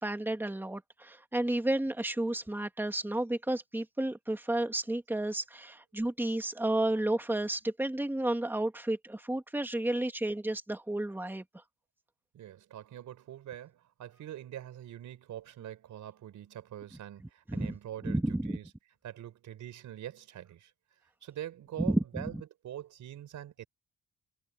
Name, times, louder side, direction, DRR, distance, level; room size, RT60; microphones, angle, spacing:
voice 1, 0.0-11.4 17.5-17.7 18.0-18.6 21.9-22.3, right 1 dB, 5° right, 2.0 m, -31 dB
voice 2, 12.3-18.7 19.0-20.7 21.2-22.4 22.6-23.7, right 11 dB, 75° right, 4.3 m, -44 dB
cardioid pair, 90°, 30 cm